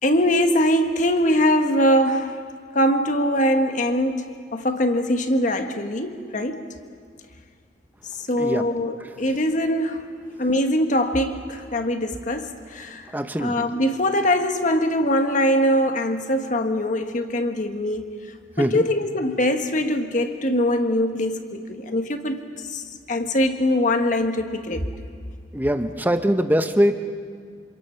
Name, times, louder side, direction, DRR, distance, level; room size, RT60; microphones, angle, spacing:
voice 1, 0.0-2.4 2.7-6.7 8.1-10.1 10.4-13.1 13.4-18.1 18.6-24.9, equal, 45° left, 6 dB, 1.5 m, -22 dB
voice 2, 13.1-13.7 18.6-18.8 25.5-26.9, equal, 10° right, 8 dB, 0.9 m, -22 dB
27.0 x 26.5 x 5.8 m, 2.1 s
head